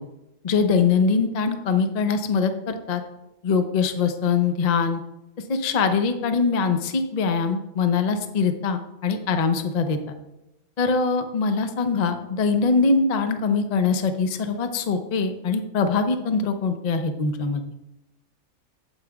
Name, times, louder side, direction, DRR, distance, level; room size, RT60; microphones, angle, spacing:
voice 1, 0.4-3.0 3.4-5.0 5.5-10.1 10.8-17.6, left 5 dB, 45° left, 7 dB, 0.5 m, -23 dB
8.4 x 8.2 x 2.3 m, 0.95 s
omnidirectional pair, 1.4 m